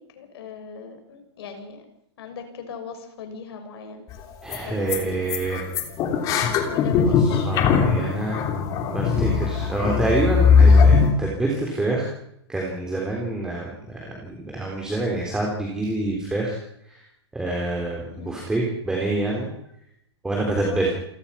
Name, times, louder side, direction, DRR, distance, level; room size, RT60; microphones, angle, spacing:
voice 1, 0.0-1.9 2.2-4.0 4.7-4.9 5.2-5.3 6.7-7.5 18.1-18.4 20.6-20.9, left 6 dB, 60° left, 6 dB, 6.1 m, -39 dB
sound 1, 4.1-4.2 4.5-4.6 4.9-5.0 5.3-11.1, left 5 dB, 25° left, 2.9 m, -19 dB
voice 2, 4.4-5.6 7.1-7.2 7.4-8.5 8.9-12.1 12.5-16.6 16.9-17.0 17.3-19.5 20.2-20.9, right 2 dB, 5° right, -2 dB, 3.6 m, -26 dB
28.5 x 17.5 x 5.8 m, 0.77 s
hypercardioid pair, 165°, 14 cm